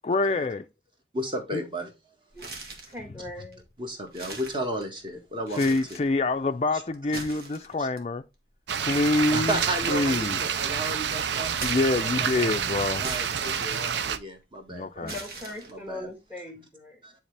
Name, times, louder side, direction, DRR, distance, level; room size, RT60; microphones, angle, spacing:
voice 1, 0.0-0.6 1.5-1.6 5.6-8.2 8.8-9.6 9.9-10.4 11.6-13.1 14.7-15.1, left 2 dB, 35° left, 0.4 m, -26 dB
voice 2, 1.1-1.9 3.8-6.0 6.7-6.8 7.8-7.9 9.3-11.5 12.0-12.6 13.0-15.1 15.7-16.1 17.0-17.1, right 1 dB, 25° right, 1.5 m, -34 dB
sound 1, 2.3-3.0 3.5-3.6 4.1-5.1 5.4-6.1 6.9-8.0 9.5-10.5 11.6-12.4 13.0-14.6 15.1-16.0, right 3 dB, 55° right, 1.8 m, -40 dB
voice 3, 2.9-3.6 15.0-17.0, left 2 dB, 10° right, 1.4 m, -40 dB
sound 2, 8.7-14.2, right 7 dB, 75° right, 0.5 m, -28 dB
9.9 x 3.6 x 3.3 m
head